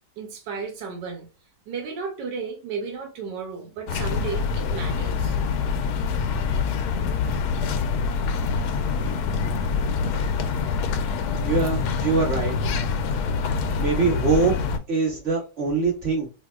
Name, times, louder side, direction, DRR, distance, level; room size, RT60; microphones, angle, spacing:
voice 1, 0.2-1.3 1.7-5.4 12.5-12.6, right 5 dB, 85° right, 1.4 m, -34 dB
sound 1, 3.9-14.8, left 5 dB, 70° left, 1.0 m, -25 dB
voice 2, 11.4-12.5 13.8-14.6 14.9-16.3, right 4 dB, 35° right, 2.1 m, -23 dB
4.1 x 2.6 x 2.3 m
omnidirectional pair, 1.9 m